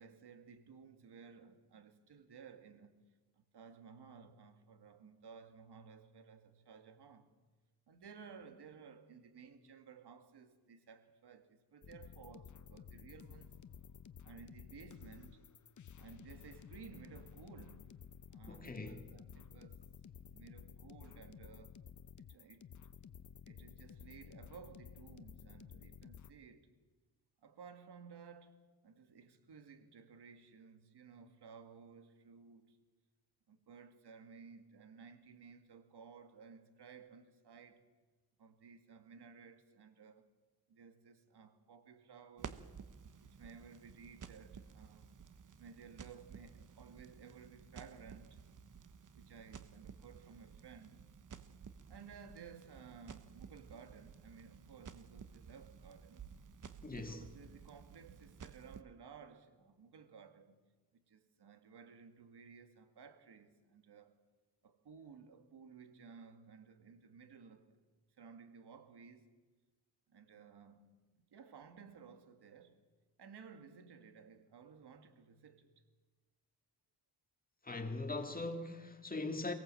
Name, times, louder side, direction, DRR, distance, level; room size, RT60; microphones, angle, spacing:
voice 1, 0.0-7.3 7.9-13.6 14.2-15.5 16.0-18.0 18.3-19.8 20.2-21.9 22.2-22.7 23.5-26.7 27.4-32.8 33.5-37.9 38.4-40.3 40.7-42.7 43.2-45.1 45.6-48.5 49.1-51.0 51.9-56.3 57.0-60.6 60.9-64.2 64.6-67.8 68.2-69.3 70.1-71.0 71.3-72.9 73.2-75.7, right 6 dB, 70° right, 2.1 m, -57 dB
sound 1, 11.8-26.3, left 7 dB, 45° left, 0.8 m, -54 dB
voice 2, 18.5-19.0 56.8-57.2 77.6-79.5, left 2 dB, 20° left, 2.1 m, -41 dB
Crackle, 42.4-58.8, right 6 dB, 50° right, 1.1 m, -54 dB
23.5 x 17.5 x 7.7 m
wide cardioid pair, 135°, 41 cm